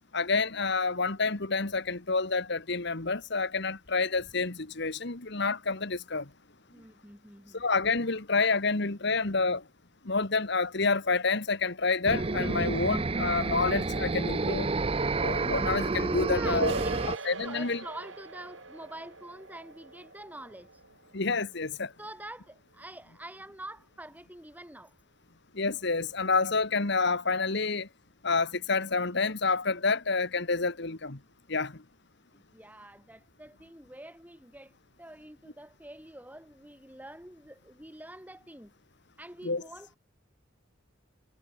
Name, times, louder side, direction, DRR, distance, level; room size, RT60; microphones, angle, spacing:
voice 1, 0.1-6.2 7.5-9.6 10.0-14.7 15.1-16.7 17.2-17.8 21.1-21.9 25.5-27.9 28.2-31.2 31.5-31.8 39.4-39.6, left 4 dB, 55° left, 1.7 m, -28 dB
voice 2, 6.7-7.6 16.3-20.7 22.0-24.9 32.3-38.7 39.2-40.0, right 1 dB, 10° right, 5.0 m, -46 dB
sound 1, 12.0-17.2, right 3 dB, 30° right, 0.6 m, -29 dB
sound 2, 16.6-22.1, right 3 dB, 70° right, 5.2 m, -41 dB
head